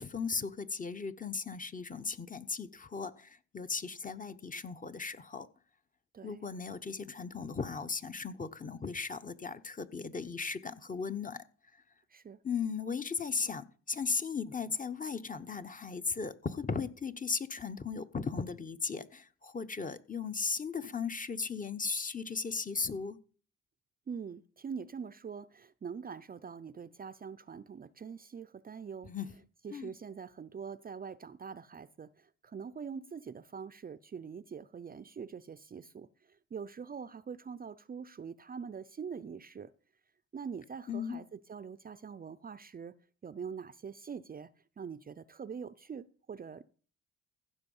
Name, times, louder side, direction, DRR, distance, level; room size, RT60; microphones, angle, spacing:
voice 1, 0.0-5.5 6.2-11.4 12.4-23.2 29.0-29.3 29.7-29.9 40.9-41.2, left 5 dB, 25° left, 0.9 m, -37 dB
voice 2, 12.1-12.4 24.1-29.1 29.6-39.7 40.3-43.0 43.2-44.5 44.8-46.6, right 6 dB, 30° right, 0.5 m, -44 dB
15.0 x 6.2 x 5.4 m
cardioid pair, 90°, 30 cm